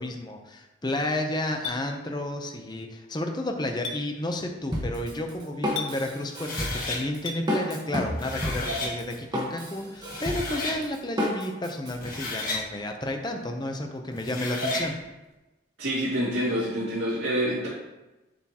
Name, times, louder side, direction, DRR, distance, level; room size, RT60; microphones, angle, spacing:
voice 1, 0.0-15.0, left 1 dB, 20° left, 4 dB, 0.7 m, -31 dB
Chink clink, 1.6-1.8 3.8-4.0 5.8-5.9 7.3-7.4, left 5 dB, 75° left, 0.7 m, -33 dB
Drum kit, 4.7-11.9, left 1 dB, 20° right, 1.3 m, -31 dB
sound 1, 6.3-7.0 8.0-8.9 9.7-9.8 10.1-10.8 11.8-12.6 14.1-14.9, left 2 dB, 45° left, 1.6 m, -32 dB
voice 2, 15.8-17.7, equal, 80° right, -10 dB, 2.2 m, -27 dB
7.1 x 6.8 x 2.9 m, 1.0 s
head